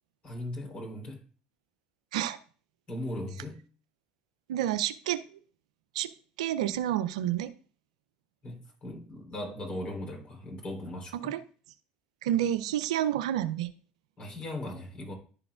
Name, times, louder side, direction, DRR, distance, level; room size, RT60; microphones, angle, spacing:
voice 1, 0.2-1.2 2.9-3.6 8.4-11.3 14.2-15.1, left 1 dB, 35° left, 0 dB, 3.6 m, -38 dB
voice 2, 4.5-5.2 5.9-6.1 6.4-7.5 11.1-11.4 12.2-13.7, right 12 dB, 85° right, 12 dB, 0.4 m, -29 dB
11.0 x 4.8 x 2.4 m, 0.40 s
hypercardioid pair, 70°, 3 cm